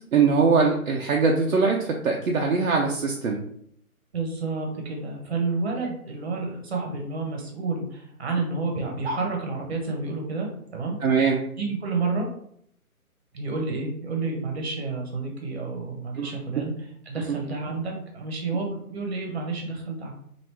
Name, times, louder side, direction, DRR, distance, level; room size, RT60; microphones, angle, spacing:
voice 1, 0.1-3.4 11.0-11.4 16.2-16.3, right 4 dB, 65° right, 0 dB, 0.6 m, -22 dB
voice 2, 4.1-11.0 11.6-12.3 13.3-16.7 17.1-20.1, right 3 dB, 45° right, 0 dB, 1.0 m, -30 dB
2.9 x 2.6 x 3.3 m, 0.68 s
figure-of-eight pair, 160°, 45 cm